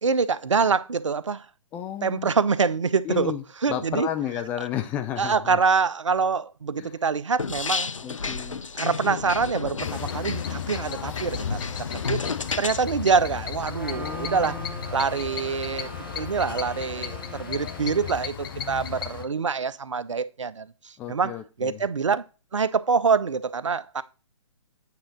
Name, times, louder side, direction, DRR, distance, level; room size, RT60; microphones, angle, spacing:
voice 1, 0.0-1.5 2.0-3.3 3.6-4.1 5.2-7.9 8.8-11.6 12.1-12.2 12.6-14.6 14.9-22.2 22.5-24.0, right 5 dB, 70° right, 0.6 m, -25 dB
voice 2, 1.7-2.3 3.0-3.4 3.7-5.6 6.8-7.0 8.0-8.6 13.9-14.7 21.0-21.8, left 10 dB, 10° left, 0.3 m, -32 dB
sound 1, 7.4-12.8, left 5 dB, 75° left, 0.5 m, -31 dB
sound 2, 9.8-19.2, left 8 dB, 45° left, 0.8 m, -35 dB
Trumpet, 13.7-18.2, right 3 dB, 5° right, 0.8 m, -42 dB
8.7 x 3.8 x 5.9 m
figure-of-eight pair, 125°, 16 cm